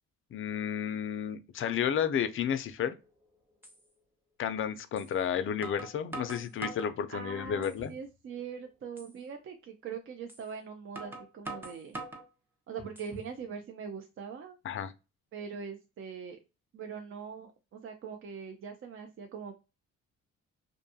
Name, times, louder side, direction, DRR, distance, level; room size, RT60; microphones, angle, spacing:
voice 1, 0.3-3.0 4.4-7.9 14.6-14.9, left 8 dB, 45° left, 0.4 m, -32 dB
sound 1, 3.0-3.1 3.6-3.8 5.0-5.1 5.6-6.9 7.4-8.0 8.4-8.5 9.0-9.1 10.3-10.4 10.9-12.3 12.8-13.3, right 2 dB, 5° right, 0.7 m, -43 dB
voice 2, 7.1-12.0 12.7-14.6 15.3-16.4 16.7-19.5, right 6 dB, 45° right, 0.4 m, -42 dB
2.6 x 2.2 x 2.6 m
cardioid pair, 90°, 30 cm